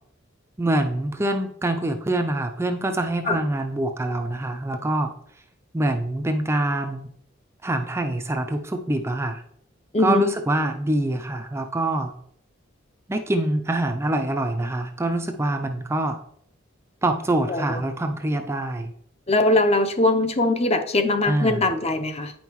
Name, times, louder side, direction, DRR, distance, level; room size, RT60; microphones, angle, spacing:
voice 1, 0.6-5.1 5.7-7.0 7.6-9.4 10.0-12.1 13.1-16.2 17.0-18.9 21.2-21.6, right 1 dB, 15° right, 5 dB, 0.4 m, -25 dB
voice 2, 9.9-10.3 17.5-17.8 19.3-22.3, left 2 dB, 30° left, 7 dB, 0.7 m, -21 dB
9.1 x 5.4 x 3.0 m, 0.70 s
head